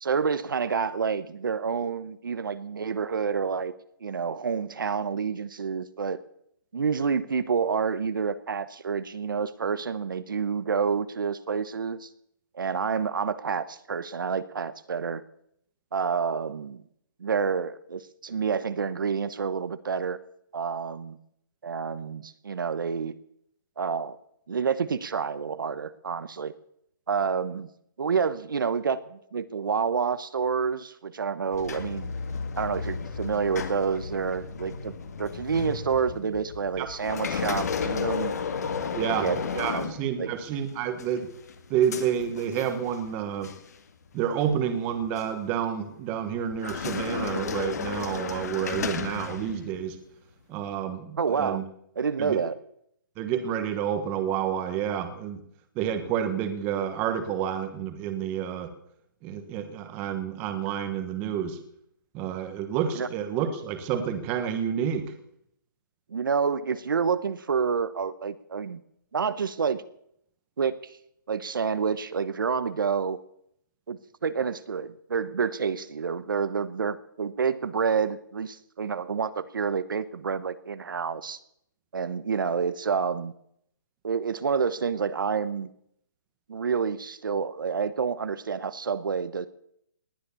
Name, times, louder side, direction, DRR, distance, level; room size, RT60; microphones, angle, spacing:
voice 1, 0.0-3.7 4.0-6.2 6.7-12.1 12.5-15.2 15.9-16.8 17.2-20.2 20.5-21.2 21.6-23.1 23.8-24.2 24.5-26.5 27.1-27.7 28.0-32.1 32.6-34.9 35.2-38.3 38.9-40.3 51.2-51.6 51.9-52.5 63.0-63.1 66.1-68.8 69.1-69.8 70.6-71.0 71.3-73.2 73.9-81.4 81.9-83.3 84.0-85.7 86.5-89.5, right 6 dB, 75° right, 14 dB, 1.0 m, -28 dB
sound 1, 31.5-40.5 41.0-43.1 43.4-43.7 44.4-45.3 46.5-49.9, left 6 dB, 50° left, 1.9 m, -33 dB
voice 2, 38.9-39.3 39.5-41.3 41.7-43.5 44.1-50.0 50.5-51.6 52.2-52.4 53.2-55.4 55.7-58.7 59.2-61.6 62.1-65.1, right 9 dB, 15° right, 9 dB, 1.2 m, -29 dB
19.5 x 9.7 x 7.0 m, 0.73 s
hypercardioid pair, 170°, 11 cm